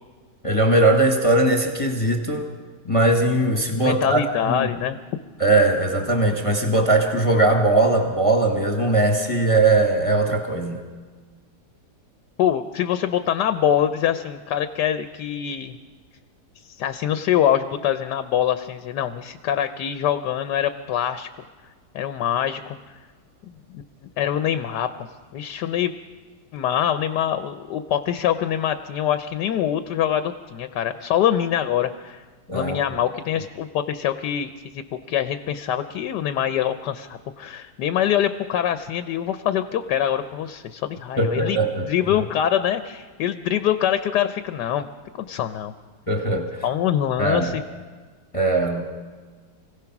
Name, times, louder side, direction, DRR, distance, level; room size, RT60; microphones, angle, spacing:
voice 1, 0.4-2.5 2.9-4.2 4.5-4.7 5.4-10.8 32.5-32.8 41.2-41.7 46.1-46.5 47.2-47.5 48.3-48.8, right 2 dB, 20° left, 3 dB, 1.5 m, -20 dB
voice 2, 3.7-5.0 12.4-15.8 16.8-21.3 21.9-22.8 23.7-23.8 24.2-24.9 25.3-25.9 26.5-32.2 32.5-41.6 41.8-44.9 45.2-45.7 46.6-47.6, left 10 dB, 75° left, 10 dB, 1.3 m, -24 dB
26.0 x 16.5 x 5.9 m, 1.5 s
omnidirectional pair, 1.9 m